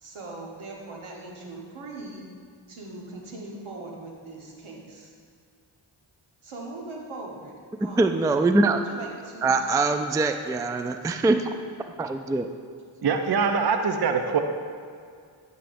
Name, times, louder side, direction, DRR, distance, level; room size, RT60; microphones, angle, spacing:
voice 1, 0.0-2.2 2.7-5.1 6.4-8.2 8.6-9.6, right 2 dB, 80° right, -2 dB, 1.4 m, -40 dB
voice 2, 8.0-8.8 9.4-11.5 12.0-12.5, right 3 dB, 10° right, 7 dB, 0.3 m, -23 dB
voice 3, 13.0-14.4, right 5 dB, 50° right, 6 dB, 0.7 m, -23 dB
11.0 x 5.8 x 2.6 m, 2.2 s
cardioid pair, 40°, 49 cm